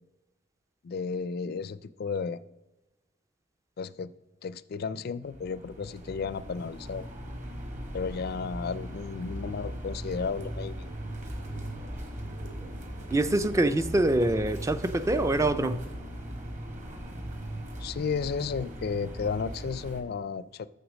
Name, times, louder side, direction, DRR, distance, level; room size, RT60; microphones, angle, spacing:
voice 1, 0.8-2.4 3.8-4.1 4.4-7.1 7.9-10.9 17.8-20.7, left 5 dB, 55° left, 0.4 m, -33 dB
sound 1, 5.2-20.0, equal, 40° right, 1.5 m, -39 dB
voice 2, 13.1-15.9, right 2 dB, 15° right, 0.4 m, -25 dB
8.0 x 6.8 x 6.2 m
head